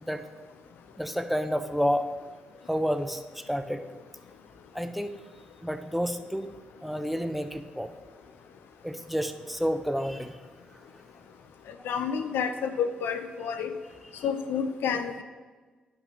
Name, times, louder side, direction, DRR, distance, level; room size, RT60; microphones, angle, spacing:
voice 1, 1.0-2.1 2.7-3.8 4.7-5.1 5.6-6.5 6.8-7.9 8.8-10.4, equal, ahead, 8 dB, 0.6 m, -30 dB
voice 2, 11.9-13.7 14.2-15.2, left 7 dB, 70° left, 8 dB, 0.4 m, -29 dB
9.1 x 5.9 x 3.1 m, 1.4 s
hypercardioid pair, 40°, 4 cm